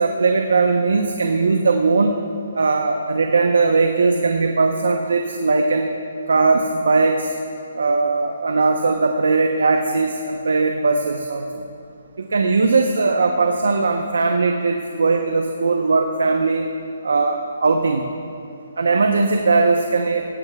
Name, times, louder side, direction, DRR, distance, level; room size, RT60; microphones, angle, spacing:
voice 1, 0.0-2.2 2.5-5.9 6.3-7.3 7.7-11.6 12.2-16.7 17.0-18.1 18.8-20.2, right 3 dB, 75° right, 4 dB, 0.8 m, -19 dB
17.0 x 15.5 x 2.3 m, 2.5 s
hypercardioid pair, 145°, 0 cm